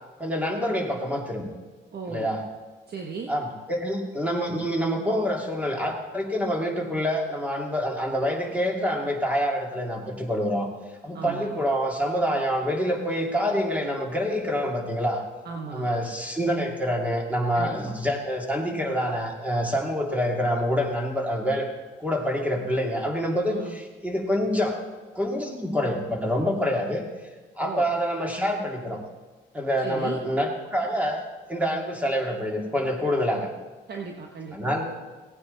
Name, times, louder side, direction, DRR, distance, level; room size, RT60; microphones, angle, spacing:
voice 1, 0.2-1.5 2.1-2.4 3.3-10.7 11.0-15.2 15.7-21.7 22.0-24.7 25.1-27.0 27.6-29.0 29.5-31.2 31.5-33.5 34.5-34.9, equal, 5° right, 0 dB, 2.8 m, -26 dB
voice 2, 1.9-2.4 2.9-3.3 11.1-11.6 15.4-15.9 17.5-18.0 23.4-23.8 27.6-27.9 29.8-30.2 33.9-34.7, right 5 dB, 55° right, 2 dB, 1.3 m, -36 dB
17.0 x 9.4 x 4.1 m, 1.3 s
cardioid pair, 90°, 20 cm